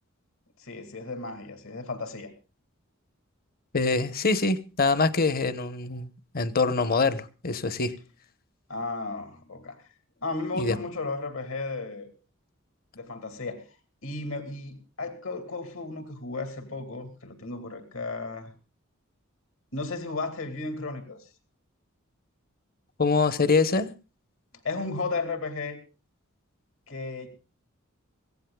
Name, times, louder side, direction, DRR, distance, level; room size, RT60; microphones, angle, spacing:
voice 1, 0.6-2.3 8.7-9.8 10.2-12.1 12.9-13.6 14.0-18.5 19.7-21.3 24.6-25.8 26.9-27.3, left 3 dB, 70° left, 2.6 m, -34 dB
voice 2, 3.7-6.1 6.3-7.9 10.5-10.8 23.0-23.9, left 4 dB, 45° left, 1.1 m, -24 dB
24.5 x 16.5 x 2.3 m
head